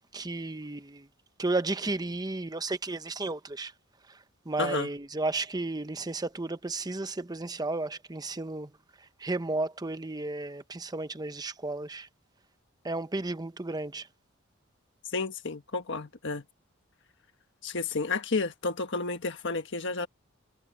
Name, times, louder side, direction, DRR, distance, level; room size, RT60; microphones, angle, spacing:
voice 1, 0.1-1.1 1.4-3.7 4.1-4.2 4.5-8.7 9.2-12.1 12.8-14.1, right 2 dB, 20° right, 0.8 m, -33 dB
voice 2, 4.6-4.9 15.1-16.4 17.6-20.1, left 3 dB, 60° left, 1.5 m, -31 dB
head